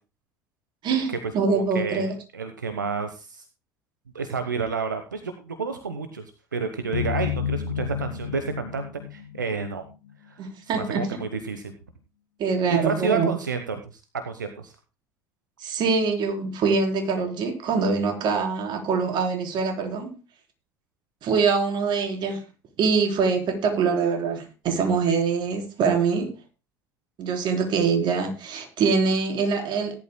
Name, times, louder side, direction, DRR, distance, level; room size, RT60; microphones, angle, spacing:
voice 1, 0.8-2.1 10.4-11.2 12.4-13.4 15.6-20.1 21.2-22.4 22.8-26.3 27.2-29.9, right 5 dB, 50° right, 3 dB, 4.0 m, -24 dB
voice 2, 1.5-3.4 4.1-6.2 6.5-9.8 10.3-10.4 10.6-11.7 12.7-14.7, right 5 dB, 90° right, 8 dB, 1.1 m, -30 dB
sound 1, 6.9-10.1, left 9 dB, 80° left, 1.2 m, -31 dB
18.0 x 11.5 x 2.2 m, 0.30 s
hypercardioid pair, 65°, 10 cm